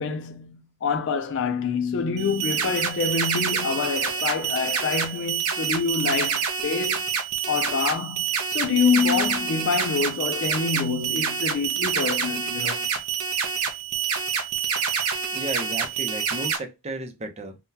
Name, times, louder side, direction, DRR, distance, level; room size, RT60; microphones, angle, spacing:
voice 1, 0.0-7.0 7.5-12.9, left 5 dB, 60° left, 0.4 m, -26 dB
sound 1, 2.2-16.6, right 7 dB, 75° right, 0.6 m, -27 dB
voice 2, 15.3-17.6, right 1 dB, 30° right, 0.6 m, -34 dB
3.7 x 2.2 x 2.8 m
head